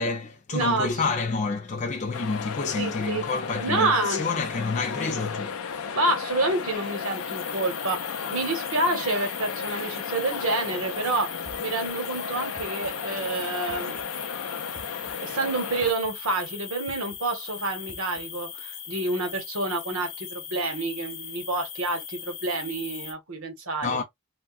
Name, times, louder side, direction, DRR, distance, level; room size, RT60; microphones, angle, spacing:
voice 1, 0.0-5.8 23.8-24.0, left 4 dB, 35° left, 0.4 m, -29 dB
voice 2, 0.5-0.9 2.8-3.2 3.6-4.2 4.5-4.6 5.9-8.0 8.3-11.3 11.6-14.0 15.2-24.0, right 2 dB, 85° right, 1.1 m, -28 dB
sound 1, 2.1-15.9, left 6 dB, 90° left, 0.5 m, -34 dB
sound 2, 6.6-23.1, left 8 dB, 65° left, 0.8 m, -39 dB
sound 3, 11.4-11.9 12.6-13.0 13.7-14.1 14.7-15.1 15.8-16.2 16.9-17.2 17.9-18.2, right 2 dB, 20° right, 0.5 m, -47 dB
3.5 x 2.1 x 2.5 m
head